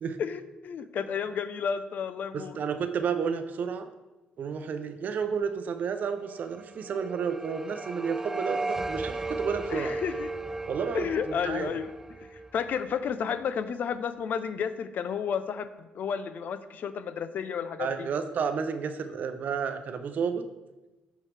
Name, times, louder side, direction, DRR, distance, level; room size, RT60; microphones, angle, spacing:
voice 1, 0.2-2.6 9.7-10.3 10.9-11.9 12.3-18.1, left 7 dB, 60° left, 12 dB, 0.5 m, -32 dB
voice 2, 2.3-3.9 4.4-9.9 10.7-11.7 17.8-20.4, right 6 dB, 55° right, 8 dB, 0.7 m, -31 dB
sound 1, 6.5-13.5, right 2 dB, 10° right, 0.3 m, -36 dB
13.0 x 4.7 x 3.4 m, 1.1 s
cardioid pair, 95°, 3 cm